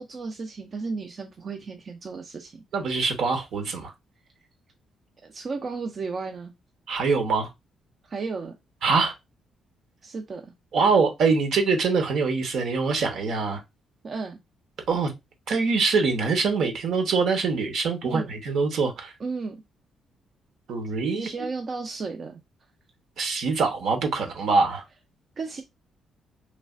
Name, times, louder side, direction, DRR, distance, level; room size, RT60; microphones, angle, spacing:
voice 1, 0.0-2.6 5.3-6.5 8.1-8.5 10.0-10.4 14.0-14.4 18.0-18.4 19.2-19.6 21.1-22.4 25.4-25.6, right 4 dB, 45° right, 0.5 m, -33 dB
voice 2, 2.7-3.9 6.9-7.5 8.8-9.1 10.7-13.6 14.9-15.1 15.5-19.1 20.7-21.3 23.2-24.8, right 4 dB, 70° right, 0.9 m, -24 dB
3.2 x 2.4 x 2.4 m
cardioid pair, 90°, 0 cm